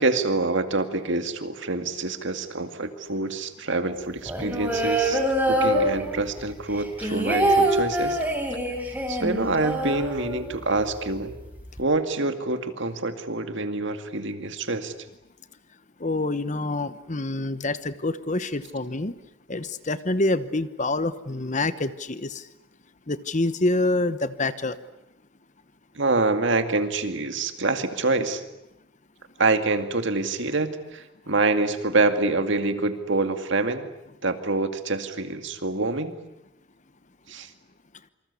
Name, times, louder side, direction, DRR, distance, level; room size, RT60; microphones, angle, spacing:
voice 1, 0.0-5.2 5.5-8.2 9.1-11.3 11.8-14.9 26.0-28.4 29.4-33.9 34.2-36.2 37.3-37.5, right 3 dB, 55° right, 8 dB, 2.2 m, -26 dB
sound 1, 4.2-6.4 6.7-10.6 10.9-11.0 11.3-11.8, right 1 dB, 10° right, 4.1 m, -25 dB
voice 2, 16.0-19.1 19.5-22.4 23.1-24.7, left 2 dB, 35° left, 13 dB, 1.0 m, -26 dB
27.0 x 26.0 x 8.4 m, 0.91 s
head